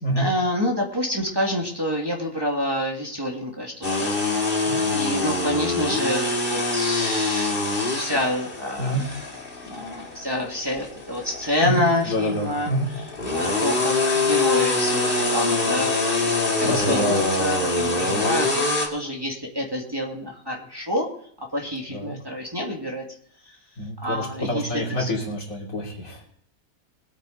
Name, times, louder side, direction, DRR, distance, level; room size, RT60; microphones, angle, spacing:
voice 1, 0.2-4.2 4.9-9.1 9.7-12.7 13.3-18.6 18.9-21.1 21.5-23.0 24.0-24.7 25.0-25.1, left 1 dB, 15° right, -2 dB, 2.1 m, -27 dB
sound 1, 3.8-18.9, left 3 dB, 40° left, 2.1 m, -25 dB
voice 2, 4.6-5.0 8.8-9.1 11.6-12.9 16.6-17.4 18.1-18.3 21.9-22.1 23.8-26.2, equal, 65° left, -3 dB, 3.9 m, -27 dB
21.0 x 9.0 x 4.0 m, 0.63 s
omnidirectional pair, 1.5 m